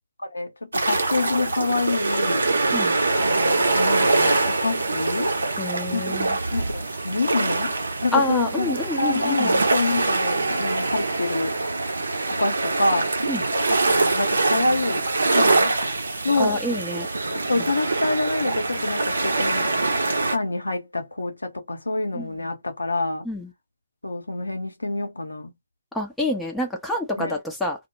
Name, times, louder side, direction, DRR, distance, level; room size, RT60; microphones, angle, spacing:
voice 1, 0.2-2.5 3.2-5.3 5.9-6.2 6.5-7.7 8.0-11.6 12.4-13.1 13.7-15.0 15.3-15.7 16.2-16.6 17.3-19.7 20.3-23.3 24.0-25.5 27.2-27.3, left 2 dB, 80° left, 0.7 m, -27 dB
sound 1, 0.7-20.4, right 2 dB, 70° right, 0.6 m, -24 dB
voice 2, 5.6-6.4 8.1-9.6 13.3-13.4 16.4-17.1 22.2-22.3 23.2-23.5 25.9-27.9, left 1 dB, 5° left, 0.5 m, -27 dB
2.1 x 2.0 x 2.9 m
figure-of-eight pair, 130°, 0 cm